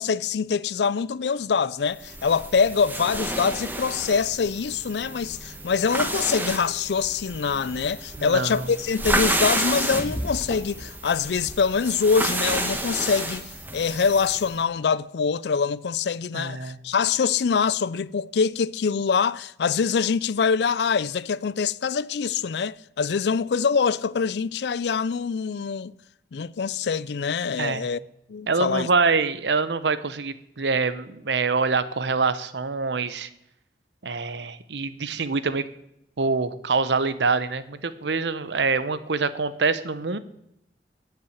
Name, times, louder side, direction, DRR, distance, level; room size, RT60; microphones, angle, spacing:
voice 1, 0.0-13.4 13.7-25.9 26.3-28.0 28.3-28.9, left 5 dB, 75° left, 0.4 m, -24 dB
sound 1, 2.0-14.5, right 1 dB, 10° right, 1.1 m, -30 dB
voice 2, 8.2-8.7 16.3-16.8 27.6-27.9 28.5-33.3 34.0-35.6 36.2-40.2, right 4 dB, 85° right, 0.8 m, -25 dB
9.9 x 8.1 x 8.0 m
head